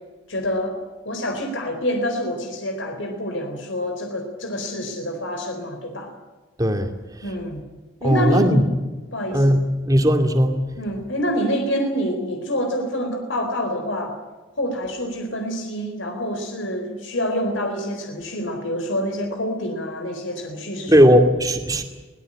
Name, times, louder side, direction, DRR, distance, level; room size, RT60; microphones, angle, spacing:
voice 1, 0.3-0.8 1.0-6.1 7.2-7.6 8.0-8.6 9.1-9.6 10.8-14.2 14.6-20.9, equal, 75° left, 4 dB, 4.1 m, -27 dB
voice 2, 6.6-6.9 8.0-8.7 9.3-10.6 20.9-21.8, equal, 20° right, 5 dB, 2.4 m, -17 dB
23.5 x 18.5 x 8.8 m, 1.2 s
head